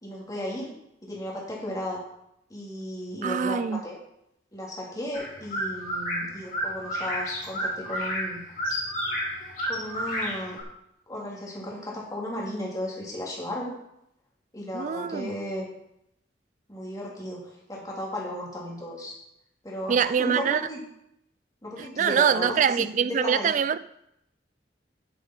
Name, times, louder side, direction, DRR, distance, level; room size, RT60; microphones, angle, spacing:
voice 1, 0.0-0.7 1.0-2.0 2.5-4.0 4.5-8.4 9.7-10.6 11.1-13.7 14.5-15.7 16.7-19.2 19.6-20.8 21.6-23.5, left 1 dB, 20° left, 2.6 m, -35 dB
voice 2, 3.2-3.8 14.7-15.3 19.9-20.6 21.8-23.8, right 7 dB, 45° right, 0.3 m, -24 dB
sound 1, 5.1-10.6, equal, 45° left, 2.9 m, -31 dB
10.5 x 7.5 x 4.4 m
head